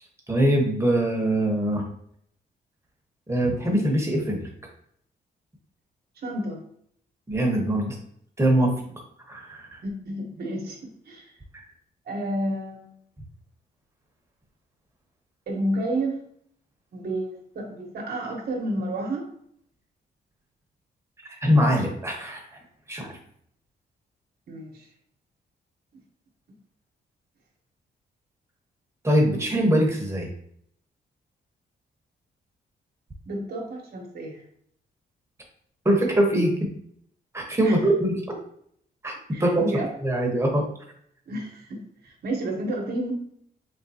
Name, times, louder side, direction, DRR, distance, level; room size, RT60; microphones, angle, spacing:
voice 1, 0.3-1.8 3.3-4.5 7.3-8.0 8.4-8.7 9.3-9.8 21.4-22.6 22.9-23.2 29.0-30.3 35.8-36.7 37.3-38.3 39.0-39.6 40.0-40.7, right 1 dB, 15° right, 0 dB, 1.0 m, -23 dB
voice 2, 6.2-6.6 9.8-11.3 12.1-13.0 15.5-16.2 16.9-19.3 24.5-24.9 33.3-34.4 37.6-37.8 39.3-39.9 41.3-43.1, right 1 dB, 65° right, 0 dB, 0.9 m, -30 dB
3.7 x 3.7 x 2.7 m, 0.69 s
cardioid pair, 105°, 18 cm